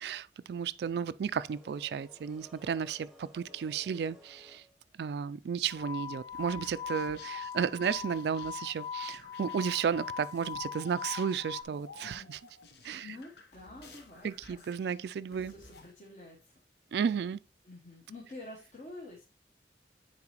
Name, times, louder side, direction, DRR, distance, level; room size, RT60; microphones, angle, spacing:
voice 1, 0.0-4.6 5.0-12.4 12.8-13.1 14.2-15.5 16.9-17.4, right 7 dB, 70° right, 0.3 m, -33 dB
sound 1, 1.5-4.9, equal, 5° right, 0.9 m, -56 dB
sound 2, 5.7-11.6, left 7 dB, 20° left, 0.5 m, -41 dB
sound 3, 6.3-15.9, left 3 dB, 70° left, 1.0 m, -55 dB
voice 2, 13.0-14.9 15.3-16.6 17.6-19.2, left 2 dB, 40° left, 1.1 m, -49 dB
9.7 x 4.1 x 2.9 m
head